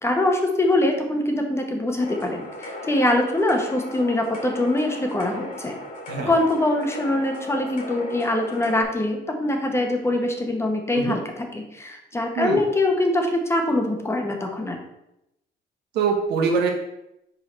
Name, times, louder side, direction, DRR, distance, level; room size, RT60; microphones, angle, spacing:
voice 1, 0.0-5.7 6.2-14.8, left 1 dB, 15° left, 3 dB, 1.1 m, -23 dB
sound 1, 2.0-8.8, left 1 dB, 55° left, 2.1 m, -37 dB
voice 2, 15.9-16.7, right 5 dB, 75° right, 2 dB, 1.3 m, -23 dB
5.3 x 4.6 x 4.4 m, 0.85 s
cardioid pair, 110°, 17 cm